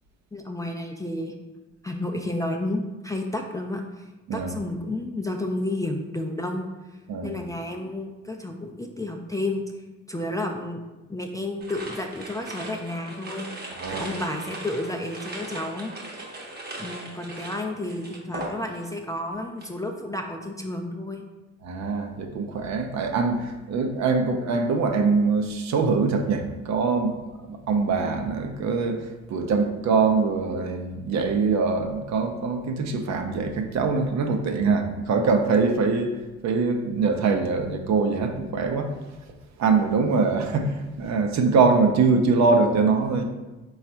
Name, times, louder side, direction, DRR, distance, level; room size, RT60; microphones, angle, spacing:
voice 1, 0.3-1.3 1.8-6.7 7.2-10.8 11.1-13.5 13.9-15.9 16.8-21.2, left 1 dB, 10° left, 2 dB, 0.3 m, -31 dB
sound 1, 11.6-19.0 19.3-19.8, right 1 dB, 35° right, 0.8 m, -38 dB
voice 2, 13.7-14.1 21.6-39.0 39.6-43.2, right 4 dB, 65° right, 5 dB, 0.6 m, -23 dB
4.0 x 2.4 x 4.3 m, 1.1 s
cardioid pair, 90°, 30 cm